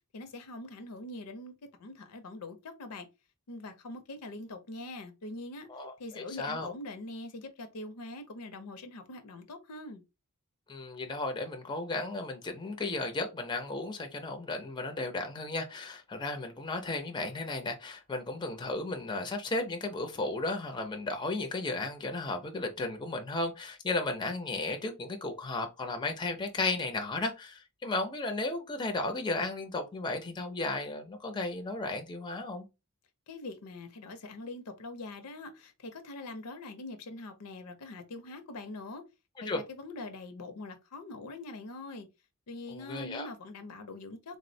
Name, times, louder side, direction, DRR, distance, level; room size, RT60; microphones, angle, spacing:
voice 1, 0.1-3.1 3.5-5.7 6.0-10.0 33.3-39.0 39.4-42.1 42.5-44.4, left 2 dB, 85° left, 0.6 m, -43 dB
voice 2, 5.7-6.7 10.7-32.7 39.5-39.6 42.7-43.3, left 2 dB, 20° left, 0.4 m, -34 dB
3.5 x 2.0 x 2.6 m
head